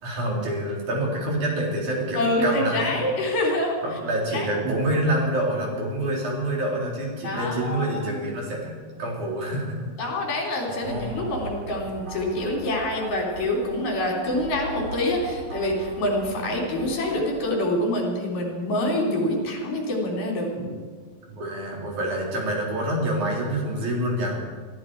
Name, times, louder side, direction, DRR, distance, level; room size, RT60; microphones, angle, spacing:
voice 1, 0.0-2.9 3.8-9.7 10.7-11.2 20.6-20.7 21.3-24.4, right 1 dB, 60° right, -3 dB, 5.0 m, -27 dB
voice 2, 2.2-3.8 4.3-4.5 7.2-8.3 10.0-20.5, left 1 dB, 65° left, -1 dB, 5.0 m, -26 dB
sound 1, 10.8-17.6, right 1 dB, 40° right, 3.3 m, -40 dB
23.5 x 12.5 x 4.7 m, 1.5 s
omnidirectional pair, 4.0 m